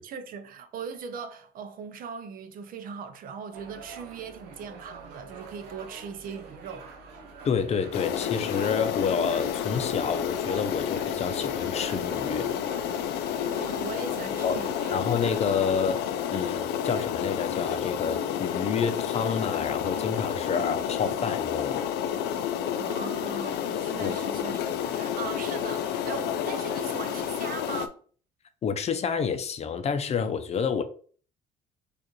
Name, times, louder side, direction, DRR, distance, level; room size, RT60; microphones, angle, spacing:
voice 1, 0.0-6.9 13.4-15.0 22.7-28.0, right 6 dB, 55° right, 0.6 m, -39 dB
sound 1, 3.5-15.6, right 4 dB, 80° right, 0.9 m, -46 dB
voice 2, 7.4-12.5 14.4-14.6 14.9-16.1 16.3-21.8 24.0-24.1 28.6-30.8, left 6 dB, 40° left, 0.6 m, -29 dB
sound 2, 7.9-27.9, left 9 dB, 85° left, 0.5 m, -30 dB
4.7 x 2.5 x 3.1 m
cardioid pair, 110°, 17 cm